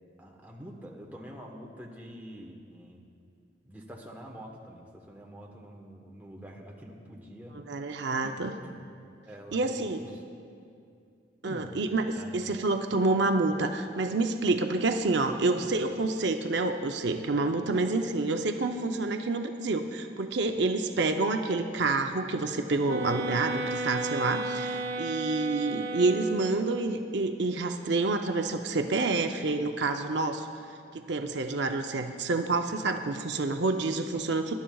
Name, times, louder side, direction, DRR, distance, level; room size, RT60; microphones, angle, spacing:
voice 1, 0.2-3.0 3.6-7.9 8.2-8.3 8.6-8.8 9.3-10.1 11.4-12.4, equal, 10° right, -1 dB, 1.1 m, -46 dB
voice 2, 7.5-8.5 9.5-10.0 11.4-30.5 30.9-34.5, right 3 dB, 70° right, 5 dB, 0.6 m, -28 dB
sound 1, 22.9-26.8, right 1 dB, 90° right, 1.0 m, -34 dB
22.5 x 11.5 x 2.3 m, 2.4 s
head